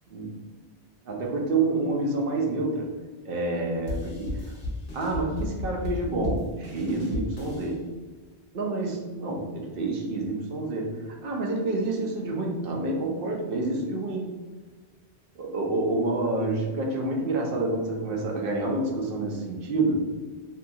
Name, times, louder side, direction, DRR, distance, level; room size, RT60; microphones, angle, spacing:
voice 1, 1.1-2.9 3.2-4.5 4.9-7.9 8.5-11.0 11.2-14.3 15.4-20.0, right 2 dB, 65° right, 0 dB, 0.7 m, -28 dB
sound 1, 3.9-7.7, left 1 dB, 55° left, 0.8 m, -34 dB
2.7 x 2.3 x 2.6 m, 1.3 s
omnidirectional pair, 1.1 m